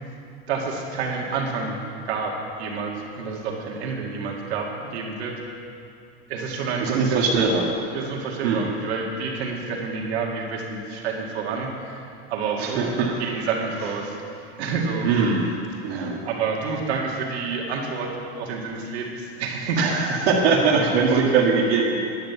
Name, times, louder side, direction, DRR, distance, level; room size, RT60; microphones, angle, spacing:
voice 1, 0.5-5.4 6.3-7.2 7.9-12.9 13.2-14.2 14.6-15.1 15.9-19.9 20.8-21.3, right 4 dB, 85° right, -1 dB, 2.1 m, -29 dB
voice 2, 6.8-7.7 8.4-8.6 12.6-13.2 15.0-15.5 15.8-16.2 19.8-22.0, right 4 dB, 70° right, -3 dB, 1.8 m, -21 dB
10.5 x 9.1 x 6.9 m, 2.5 s
supercardioid pair, 165°, 32 cm